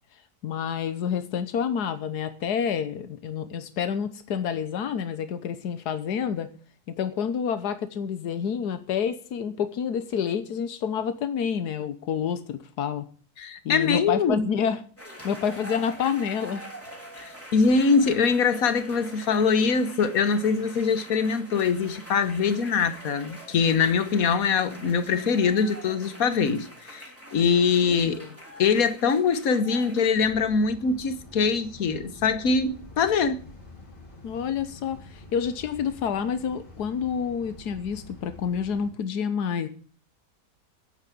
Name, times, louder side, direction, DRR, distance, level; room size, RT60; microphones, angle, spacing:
voice 1, 0.4-6.5 6.9-13.0 13.6-14.8 15.2-16.6 27.9-28.3 34.2-39.7, left 7 dB, 90° left, 1.5 m, -28 dB
voice 2, 13.4-14.4 17.5-27.1 27.3-28.2 28.6-33.4, left 5 dB, 65° left, 1.6 m, -23 dB
sound 1, 15.0-30.1, right 1 dB, 10° left, 3.1 m, -44 dB
sound 2, 30.1-38.9, left 2 dB, 35° left, 3.9 m, -47 dB
9.7 x 9.1 x 8.4 m
omnidirectional pair, 1.7 m